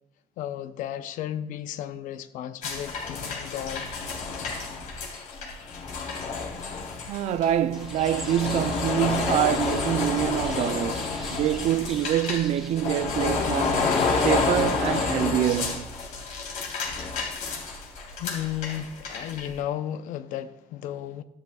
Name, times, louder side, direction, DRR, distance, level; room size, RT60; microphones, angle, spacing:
voice 1, 0.4-3.9 18.2-21.2, left 11 dB, 90° left, 0.7 m, -34 dB
sound 1, 2.6-19.5, left 4 dB, 70° left, 3.5 m, -29 dB
voice 2, 7.1-13.9 14.2-15.9, right 11 dB, 60° right, 0.5 m, -26 dB
sound 2, 7.7-15.2, equal, ahead, 1.3 m, -46 dB
14.5 x 11.5 x 2.3 m
cardioid pair, 160°, 13 cm